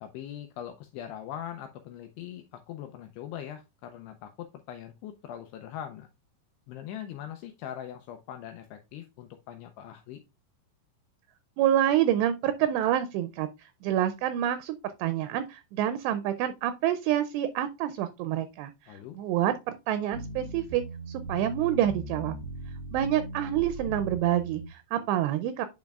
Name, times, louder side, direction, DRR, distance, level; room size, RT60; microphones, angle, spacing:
voice 1, 0.0-6.1 6.7-10.2 18.9-19.2, left 10 dB, 85° left, 2.4 m, -41 dB
voice 2, 11.6-19.5 19.9-20.8 21.1-22.4 22.9-25.7, right 11 dB, 85° right, 2.5 m, -27 dB
sound 1, 20.1-24.7, right 2 dB, 30° left, 1.8 m, -39 dB
9.0 x 5.3 x 2.3 m
omnidirectional pair, 5.2 m